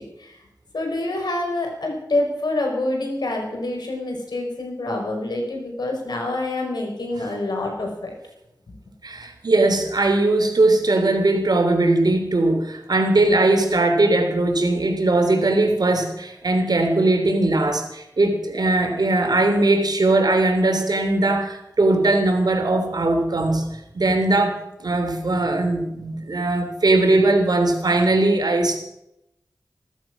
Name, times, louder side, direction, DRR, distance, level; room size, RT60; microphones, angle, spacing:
voice 1, 0.7-8.1, left 2 dB, 85° left, 2 dB, 4.9 m, -26 dB
voice 2, 9.0-23.6 23.9-28.8, right 2 dB, 70° right, 4 dB, 3.3 m, -20 dB
15.0 x 13.5 x 6.1 m, 0.83 s
cardioid pair, 45°, 7 cm